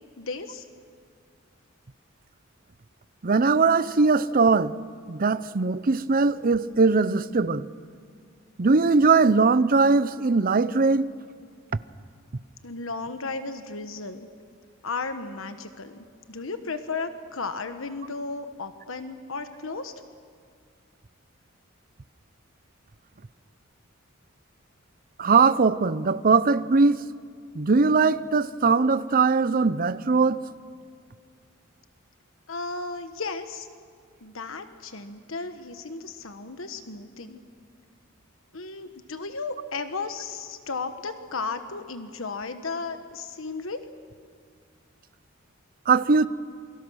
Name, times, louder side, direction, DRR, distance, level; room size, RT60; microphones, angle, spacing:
voice 1, 0.2-0.7 12.6-14.3 14.8-19.9 32.5-33.7 34.2-37.4 38.5-43.8, left 4 dB, 75° left, 1.2 m, -34 dB
voice 2, 3.2-4.7 5.1-7.7 8.6-11.1 25.2-27.0 27.5-30.4 45.9-46.3, right 4 dB, 45° right, 0.6 m, -20 dB
28.5 x 23.5 x 6.3 m
head